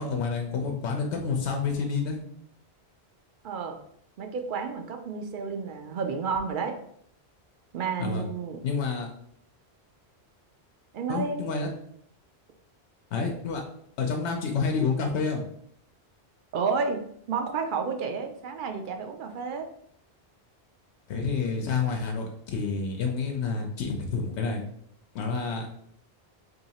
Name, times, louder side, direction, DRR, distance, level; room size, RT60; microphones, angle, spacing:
voice 1, 0.0-2.2 8.0-8.3 8.6-9.1 11.1-11.7 13.1-13.6 14.0-15.4 21.1-24.6 25.1-25.7, left 5 dB, 85° left, 2 dB, 0.9 m, -29 dB
voice 2, 3.4-3.8 4.2-6.8 7.7-8.6 10.9-11.4 16.5-17.0 17.3-19.7, right 5 dB, 60° right, 5 dB, 0.6 m, -31 dB
2.8 x 2.8 x 4.0 m, 0.68 s
omnidirectional pair, 1.1 m